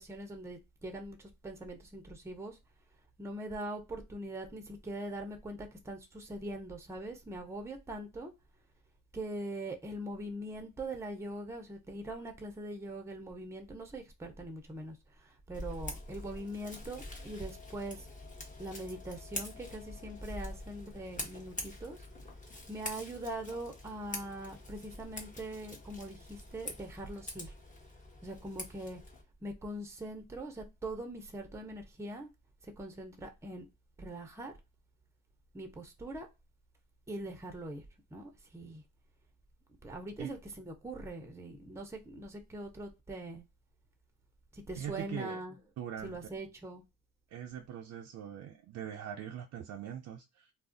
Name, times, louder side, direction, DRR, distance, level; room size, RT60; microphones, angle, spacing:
voice 1, 0.0-2.6 3.2-8.3 9.1-18.1 18.6-22.0 22.7-27.5 28.2-29.0 29.4-32.3 32.6-33.7 34.0-34.5 35.5-36.3 37.1-37.8 38.1-38.8 39.8-43.5 44.5-45.6 46.0-46.8, right 1 dB, 10° right, 0.6 m, -42 dB
Scissors, 15.5-29.2, left 2 dB, 25° left, 0.9 m, -45 dB
voice 2, 44.8-45.4 45.8-46.3 47.3-50.5, right 9 dB, 65° right, 0.5 m, -42 dB
2.4 x 2.0 x 3.6 m
cardioid pair, 90°, 30 cm